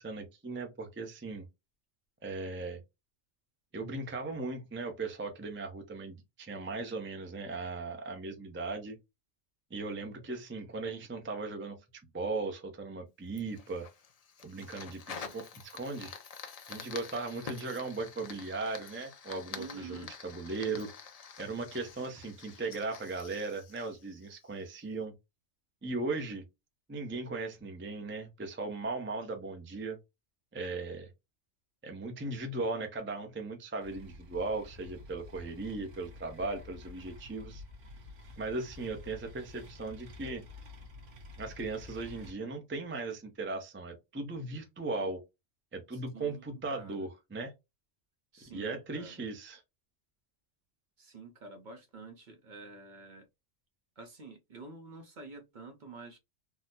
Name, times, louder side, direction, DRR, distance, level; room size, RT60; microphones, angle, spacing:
voice 1, 0.0-1.4 2.2-2.8 3.7-9.0 9.7-11.8 12.1-13.9 14.4-16.1 16.7-20.9 21.4-25.1 25.8-26.4 26.9-30.0 30.5-31.1 31.8-37.6 38.4-40.4 41.4-45.2 45.7-47.5 48.5-49.6, right 3 dB, 20° right, 0.3 m, -37 dB
Fire, 13.4-24.7, left 6 dB, 50° left, 0.4 m, -47 dB
voice 2, 19.6-20.1 45.9-47.0 48.3-49.2 51.0-53.3 54.0-56.2, right 4 dB, 50° right, 0.7 m, -48 dB
sound 1, 33.8-42.3, left 2 dB, 85° right, 1.2 m, -50 dB
3.8 x 2.0 x 2.6 m
omnidirectional pair, 1.2 m